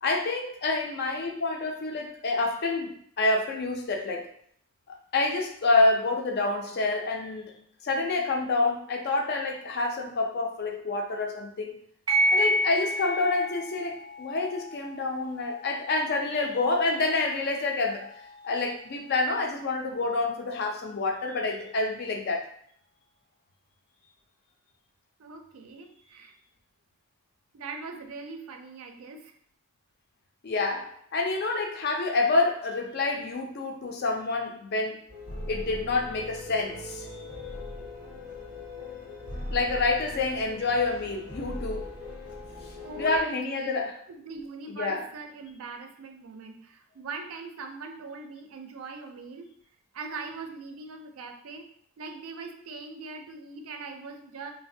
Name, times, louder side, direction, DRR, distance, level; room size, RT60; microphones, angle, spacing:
voice 1, 0.0-4.3 4.9-7.6 7.8-11.8 12.3-18.1 18.4-22.4 30.4-35.0 35.5-37.4 39.5-41.9 43.0-44.0 44.7-45.0, left 3 dB, 45° left, 3 dB, 0.4 m, -28 dB
sound 1, 12.1-21.1, equal, 20° right, 0.5 m, -32 dB
voice 2, 25.2-26.3 27.5-29.3 42.8-43.8 44.1-49.5 49.9-51.7 52.0-54.5, right 4 dB, 75° right, 5 dB, 0.4 m, -41 dB
sound 2, 35.1-43.2, left 2 dB, 85° left, 1.0 m, -39 dB
3.1 x 2.1 x 2.6 m, 0.64 s
head